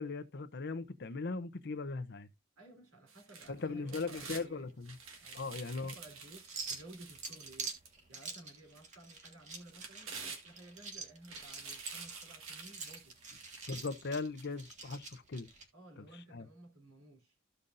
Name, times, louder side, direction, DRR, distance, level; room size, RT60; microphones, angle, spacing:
voice 1, 0.0-2.3 3.5-5.0 5.3-5.9 13.7-15.5 16.3-16.5, left 3 dB, 50° left, 0.7 m, -39 dB
voice 2, 2.6-4.7 5.2-7.7 8.1-13.1 15.7-17.4, right 2 dB, 90° right, 3.1 m, -56 dB
sound 1, 3.1-4.4 4.8-8.2 8.7-8.8 9.5-10.8 11.2-13.9 14.4-14.5, right 5 dB, 70° right, 1.5 m, -49 dB
sound 2, 3.5-15.7, right 4 dB, 35° right, 1.6 m, -47 dB
14.0 x 5.5 x 2.6 m
head